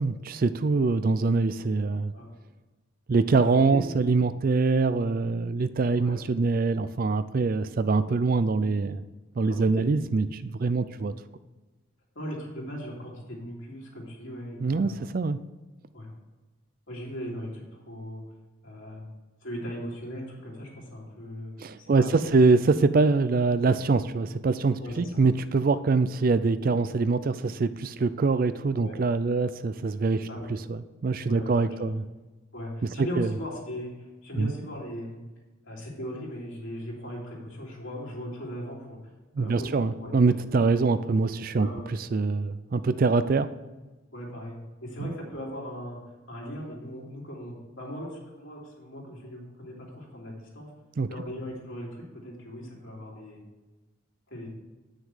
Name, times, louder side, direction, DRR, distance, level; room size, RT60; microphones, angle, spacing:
voice 1, 0.0-2.1 3.1-9.0 9.4-11.1 14.6-15.4 21.6-32.0 33.2-33.3 34.4-34.5 39.3-41.7 42.1-43.5 45.0-45.1 51.0-51.1, right 4 dB, 45° right, 13 dB, 0.4 m, -24 dB
voice 2, 3.4-3.8 6.0-6.2 9.5-10.0 12.1-15.0 15.9-16.1 16.9-18.2 18.6-19.1 19.4-21.5 21.8-22.4 24.8-25.0 28.8-29.0 30.2-30.5 31.3-31.9 32.5-35.2 35.6-39.0 39.4-40.1 40.5-40.6 41.5-41.9 44.1-46.0 46.3-50.7 51.1-53.4 54.3-54.5, equal, 70° left, -3 dB, 3.1 m, -38 dB
9.3 x 6.4 x 4.9 m, 1.2 s
head